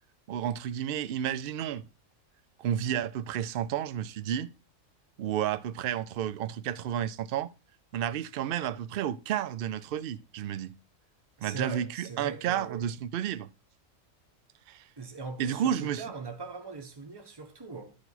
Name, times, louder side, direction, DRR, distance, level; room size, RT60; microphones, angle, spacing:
voice 1, 0.3-1.8 2.6-4.5 5.2-7.5 7.9-10.7 11.4-13.5 14.7-14.8 15.4-16.0, right 10 dB, 65° right, 0.5 m, -31 dB
voice 2, 11.4-12.8 15.0-18.0, right 4 dB, 20° right, 1.1 m, -41 dB
11.5 x 4.5 x 4.1 m
omnidirectional pair, 1.4 m